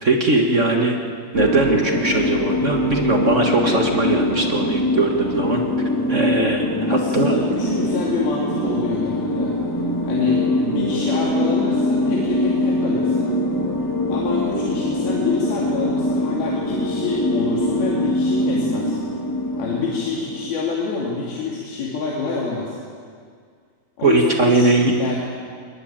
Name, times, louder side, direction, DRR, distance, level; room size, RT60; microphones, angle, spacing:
voice 1, 0.0-1.0 1.3-5.6 6.1-7.3 24.0-24.9, right 3 dB, 55° right, 2 dB, 0.8 m, -20 dB
sound 1, 1.3-20.5, left 1 dB, 10° left, 1.3 m, -23 dB
voice 2, 6.9-9.5 10.0-13.3 14.1-19.0 19.6-22.7 24.0-25.2, left 4 dB, 85° left, -3 dB, 4.5 m, -26 dB
22.0 x 21.0 x 9.0 m, 2.1 s
omnidirectional pair, 4.2 m